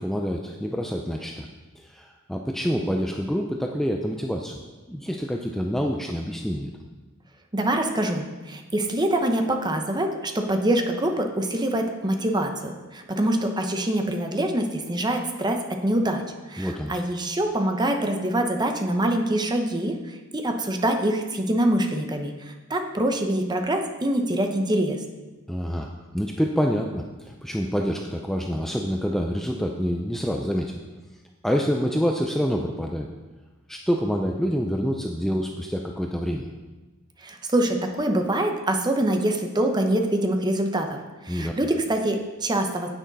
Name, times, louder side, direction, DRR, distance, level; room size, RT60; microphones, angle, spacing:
voice 1, 0.0-1.5 1.8-4.6 4.9-6.7 16.6-17.0 25.5-25.9 26.1-30.8 31.4-33.1 33.7-36.5 41.3-41.5, equal, ahead, 1 dB, 0.5 m, -27 dB
voice 2, 7.5-16.2 16.5-25.0 37.2-41.0 41.2-42.9, right 1 dB, 20° right, 4 dB, 0.9 m, -25 dB
10.0 x 8.9 x 4.1 m, 1.2 s
head